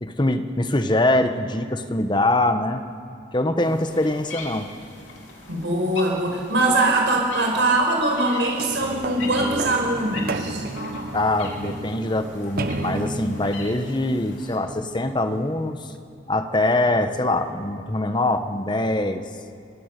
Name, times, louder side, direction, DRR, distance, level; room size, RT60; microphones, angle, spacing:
voice 1, 0.0-2.8 3.3-4.7 11.1-15.9 16.3-19.3, left 1 dB, 25° left, 8 dB, 1.1 m, -23 dB
sound 1, 3.6-14.6, left 3 dB, 85° left, 3.7 m, -40 dB
voice 2, 5.5-10.6, right 2 dB, 75° right, 0 dB, 5.5 m, -22 dB
sound 2, 8.5-15.3 15.9-16.0, right 2 dB, 50° right, 1.0 m, -32 dB
23.5 x 18.5 x 6.8 m, 2.4 s
head